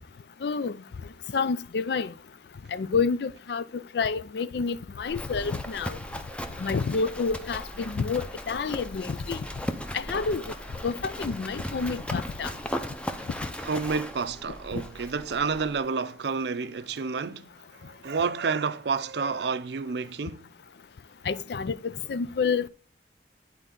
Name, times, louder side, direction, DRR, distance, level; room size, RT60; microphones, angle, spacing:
voice 1, 0.4-0.8 1.3-2.1 2.7-6.0 6.6-9.4 9.9-10.4 10.8-12.5 21.3-21.8 22.1-22.7, left 5 dB, 65° left, 0.4 m, -28 dB
Livestock farm animals working animals, 5.1-15.8, equal, 5° left, 0.6 m, -37 dB
voice 2, 13.6-17.5 17.8-20.5, right 5 dB, 70° right, 0.5 m, -30 dB
11.5 x 4.4 x 3.7 m
head